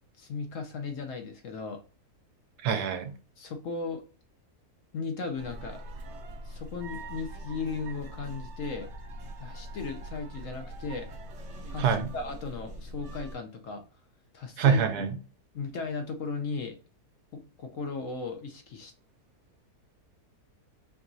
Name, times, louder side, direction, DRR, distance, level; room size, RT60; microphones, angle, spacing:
voice 1, 0.2-1.8 3.4-4.0 4.9-5.8 6.4-8.9 9.4-11.1 11.7-13.8 14.3-14.8 15.5-16.8 17.3-18.9, left 4 dB, 60° left, 0.9 m, -36 dB
voice 2, 2.6-3.2 11.8-12.1 14.6-15.1, right 6 dB, 75° right, 1.2 m, -25 dB
sound 1, 5.4-13.4, right 1 dB, 55° right, 1.0 m, -42 dB
4.5 x 2.9 x 2.6 m
omnidirectional pair, 1.7 m